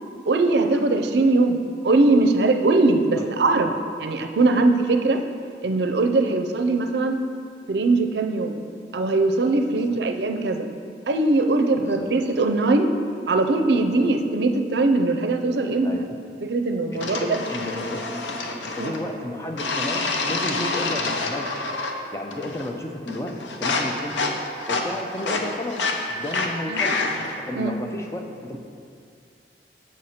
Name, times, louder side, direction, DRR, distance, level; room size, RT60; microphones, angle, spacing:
voice 1, 0.3-3.7 4.0-5.2 5.6-7.2 7.7-8.6 8.9-10.7 11.1-12.9 13.3-16.0 16.4-17.4 18.8-18.9 26.7-26.8 27.5-27.7, right 2 dB, 70° right, 7 dB, 0.5 m, -21 dB
voice 2, 9.7-10.0 11.8-12.1 14.0-14.1 15.8-16.0 16.9-18.3 18.5-21.6 22.1-24.3 24.7-25.8 26.1-27.1 27.4-28.6, left 1 dB, 15° left, 3 dB, 0.5 m, -32 dB
sound 1, 17.0-19.0 19.6-22.0 22.3-22.8 23.1-27.4, left 3 dB, 90° left, 0.7 m, -27 dB
7.4 x 6.4 x 4.3 m, 2.3 s
head